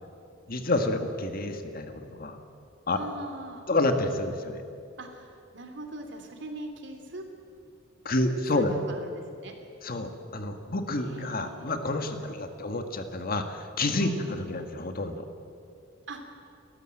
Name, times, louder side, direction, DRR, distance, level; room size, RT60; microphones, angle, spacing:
voice 1, 0.5-2.4 2.9-3.0 3.7-4.6 8.0-8.7 9.8-15.2, left 2 dB, 50° left, 7 dB, 1.7 m, -29 dB
voice 2, 2.9-3.7 5.0-7.2 8.0-8.3 8.5-9.5 10.9-11.7 12.2-12.3 14.0-14.2 16.1-16.2, right 1 dB, 65° right, 5 dB, 3.0 m, -41 dB
30.0 x 13.5 x 7.8 m, 2.5 s
head